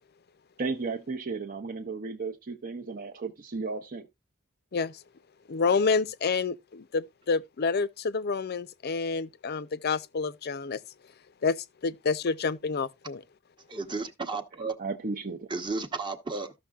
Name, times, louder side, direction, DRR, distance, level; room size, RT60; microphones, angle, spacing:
voice 1, 0.6-4.1 14.8-15.5, right 4 dB, 45° right, 0.7 m, -34 dB
voice 2, 5.5-10.8 11.4-13.2, left 4 dB, 50° left, 0.5 m, -28 dB
voice 3, 13.7-14.8 15.5-16.5, right 3 dB, 25° right, 1.0 m, -33 dB
14.0 x 6.3 x 2.4 m
head